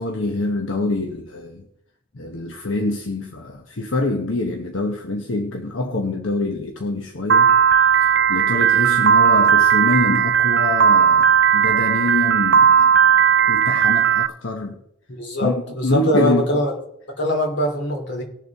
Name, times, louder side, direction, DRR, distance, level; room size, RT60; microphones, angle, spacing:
voice 1, 0.0-1.6 2.1-7.5 8.0-13.0 13.5-14.8 15.4-15.5 15.8-16.4, left 2 dB, 85° left, 1.1 m, -25 dB
Piano, 7.3-14.3, right 8 dB, 60° right, 0.4 m, -16 dB
voice 2, 15.1-16.7 17.2-18.2, left 1 dB, 65° left, 2.8 m, -22 dB
19.5 x 6.8 x 3.6 m
head